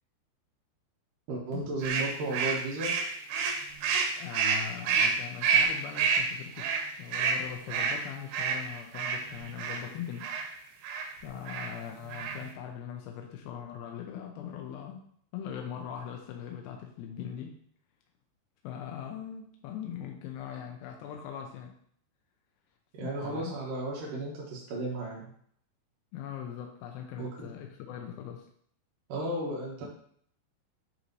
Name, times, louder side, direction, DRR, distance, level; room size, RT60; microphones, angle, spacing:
voice 1, 1.3-2.9 22.9-25.2 27.2-27.5 29.1-29.9, right 2 dB, 65° right, -4 dB, 2.5 m, -34 dB
sound 1, 1.8-9.8 10.2-10.5 10.8-11.1 11.5-11.7 12.0-12.5, right 5 dB, 85° right, 3.0 m, -29 dB
voice 2, 4.2-10.3 11.2-15.1 15.3-17.6 18.6-21.7 23.0-23.5 26.1-28.5, left 9 dB, 80° left, 2 dB, 2.2 m, -41 dB
9.2 x 3.1 x 4.1 m, 0.63 s
omnidirectional pair, 4.9 m